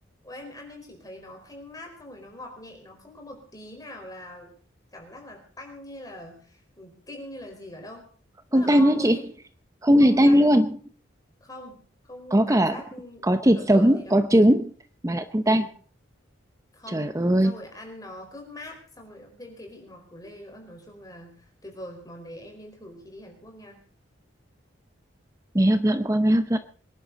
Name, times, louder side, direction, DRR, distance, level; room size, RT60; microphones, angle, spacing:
voice 1, 0.2-4.5 4.9-8.1 8.5-9.2 10.0-10.6 11.4-14.2 15.4-15.7 16.7-23.8, left 1 dB, 20° left, 3 dB, 4.6 m, -43 dB
voice 2, 8.5-9.2 9.8-10.8 12.3-12.8 13.2-14.7 15.0-15.7 16.9-17.5 25.5-26.6, equal, 15° right, 10 dB, 0.7 m, -19 dB
25.0 x 11.0 x 4.0 m, 0.41 s
head